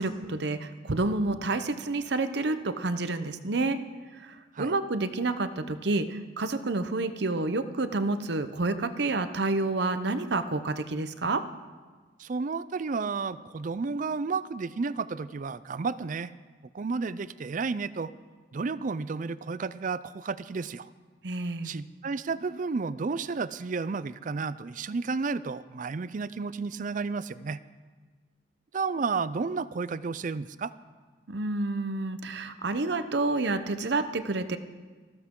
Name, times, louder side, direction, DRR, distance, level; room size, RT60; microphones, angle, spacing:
voice 1, 0.0-3.8 4.1-11.4 21.2-21.7 31.3-34.6, right 2 dB, 60° right, 10 dB, 0.8 m, -29 dB
voice 2, 12.2-16.3 16.7-18.1 18.5-20.9 21.6-27.6 28.7-30.7, right 4 dB, 45° right, 16 dB, 0.4 m, -32 dB
20.0 x 15.0 x 3.8 m, 1.4 s
head